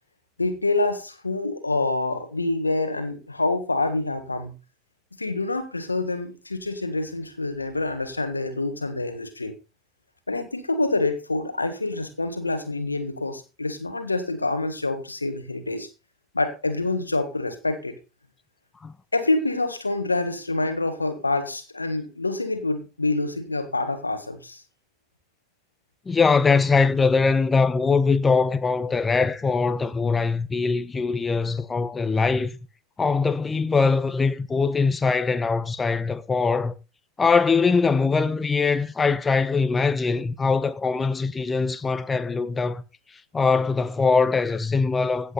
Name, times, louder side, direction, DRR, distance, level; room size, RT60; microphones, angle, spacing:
voice 1, 0.4-4.5 5.2-9.5 10.3-15.9 16.3-18.0 19.1-24.6, left 2 dB, 90° left, 1.6 m, -26 dB
voice 2, 26.1-32.5 33.0-36.7 37.2-42.8 43.3-45.3, left 4 dB, 20° left, 1.2 m, -22 dB
16.0 x 8.6 x 4.1 m
figure-of-eight pair, 70°, 0 cm